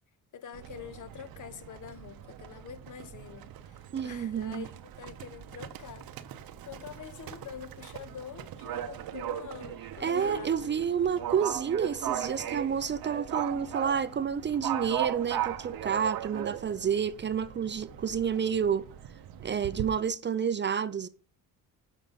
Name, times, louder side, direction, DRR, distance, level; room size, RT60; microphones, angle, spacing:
voice 1, 0.3-4.7 5.0-6.1 6.4-10.8, left 8 dB, 55° left, 0.8 m, -45 dB
Livestock farm animals working animals, 0.5-19.9, right 11 dB, 75° right, 0.8 m, -39 dB
voice 2, 3.9-4.7 10.0-18.8 19.4-21.1, right 7 dB, 30° right, 0.4 m, -29 dB
6.7 x 4.9 x 5.6 m
cardioid pair, 100°, 36 cm